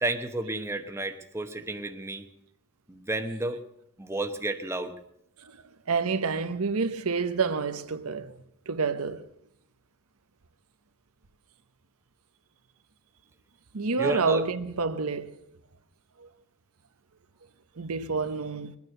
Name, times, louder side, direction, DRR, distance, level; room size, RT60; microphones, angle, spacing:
voice 1, 0.0-2.3 2.9-3.6 4.0-4.9 14.0-14.4, right 2 dB, 10° right, 1.0 m, -31 dB
voice 2, 5.9-8.3 8.7-9.3 13.7-15.4 16.2-16.3 17.8-18.8, right 4 dB, 75° right, 0.9 m, -28 dB
21.5 x 9.5 x 6.6 m
head